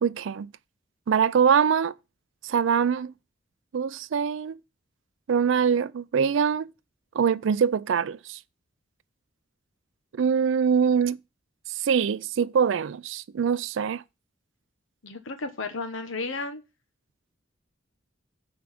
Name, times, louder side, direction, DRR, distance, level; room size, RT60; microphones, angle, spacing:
voice 1, 0.0-0.5 1.1-1.9 2.4-3.1 3.7-4.6 5.3-6.7 7.1-8.4 10.1-11.2 11.8-14.0, right 7 dB, 70° right, 0.4 m, -23 dB
voice 2, 15.0-16.6, left 3 dB, 75° left, 1.1 m, -33 dB
6.3 x 4.7 x 5.9 m
head